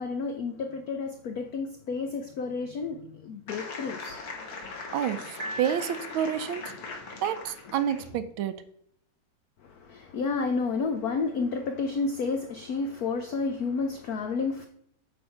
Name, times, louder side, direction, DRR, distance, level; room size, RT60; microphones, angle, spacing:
voice 1, 0.0-4.2 9.6-14.7, left 4 dB, 75° left, 0.8 m, -31 dB
sound 1, 3.5-8.2, left 4 dB, 50° left, 1.5 m, -40 dB
voice 2, 4.9-6.7 7.2-8.6, right 9 dB, 75° right, 1.3 m, -29 dB
Piano, 5.4-6.7, right 2 dB, 60° right, 1.2 m, -40 dB
8.7 x 3.5 x 5.6 m
omnidirectional pair, 2.4 m